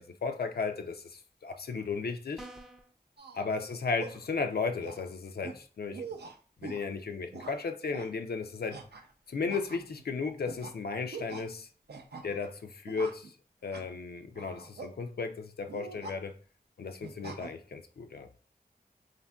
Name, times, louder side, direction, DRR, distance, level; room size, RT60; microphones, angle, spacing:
voice 1, 0.0-2.5 3.3-6.0 6.6-8.8 9.3-11.7 12.2-13.3 13.6-16.3 16.8-18.3, left 4 dB, 70° left, 0.4 m, -35 dB
sound 1, 2.4-2.9, right 1 dB, 5° right, 0.4 m, -47 dB
sound 2, 3.2-3.5 4.0-4.3 4.8-5.1 5.4-5.6 5.9-6.9 7.3-7.6 7.9-8.1 8.7-9.1 9.5-10.1 10.5-10.7 11.1-11.4 11.9-12.5 12.9-13.3 13.7-13.9 14.3-14.9 15.7-16.2 17.0-17.5, right 4 dB, 80° right, 0.4 m, -44 dB
3.4 x 2.5 x 2.2 m
wide cardioid pair, 45°, 17 cm